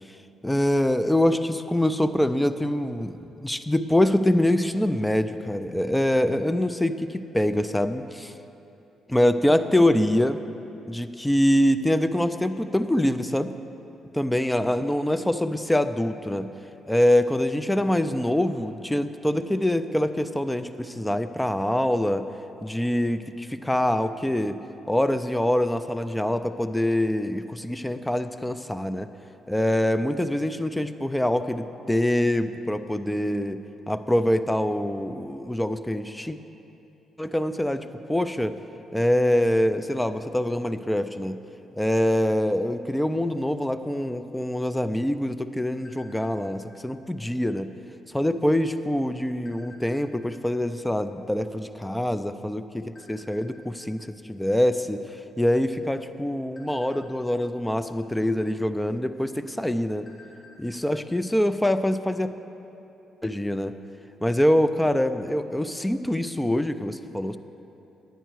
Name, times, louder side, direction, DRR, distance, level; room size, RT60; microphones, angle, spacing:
voice 1, 0.4-8.3 9.1-10.4 10.9-13.5 14.1-16.5 16.9-22.3 22.6-24.6 24.9-29.1 29.5-33.6 33.9-36.4 37.2-38.5 38.9-41.4 41.8-47.7 48.1-52.8 53.1-60.1 60.6-62.3 63.2-63.8 64.2-67.4, left 1 dB, 5° left, 11 dB, 0.4 m, -24 dB
sound 1, 45.8-46.7 47.1-47.4 47.7-48.0 48.7-50.3 50.9-51.0 51.2-52.5 52.9-53.4 54.0-54.2 54.5-54.7 55.2-55.7 56.1-57.6 58.6-58.7 59.2-59.3 59.6-60.7 61.0-61.1 61.5-61.6, left 2 dB, 35° left, 2.9 m, -53 dB
10.0 x 10.0 x 4.6 m, 2.9 s
cardioid pair, 90°, 0 cm